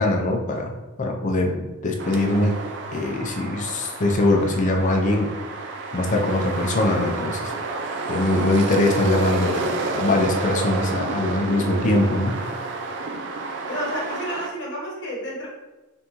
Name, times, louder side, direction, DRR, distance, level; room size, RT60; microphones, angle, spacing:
voice 1, 0.0-2.6 2.9-5.3 5.9-7.5 8.1-12.4, left 2 dB, 35° left, 2 dB, 0.5 m, -22 dB
sound 1, 2.0-14.5, right 3 dB, 55° right, 0.5 m, -30 dB
voice 2, 13.7-15.5, equal, 55° left, -4 dB, 1.2 m, -31 dB
4.0 x 3.4 x 3.0 m, 1.1 s
head